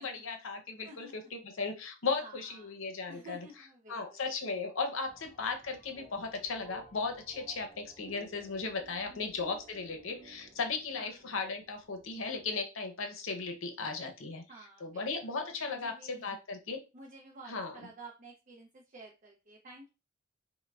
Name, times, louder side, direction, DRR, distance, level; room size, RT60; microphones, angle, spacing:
voice 1, 0.0-3.4 3.9-14.4 14.8-16.8 17.5-17.7, left 4 dB, 70° left, 5 dB, 0.7 m, -36 dB
voice 2, 0.8-1.1 2.2-2.7 3.1-4.2 9.1-9.3 11.0-11.2 14.5-16.4 16.9-19.9, right 2 dB, 35° right, 0 dB, 0.5 m, -52 dB
sound 1, 5.1-12.5, right 2 dB, 10° left, 1.1 m, -56 dB
4.5 x 2.2 x 2.3 m, 0.29 s
head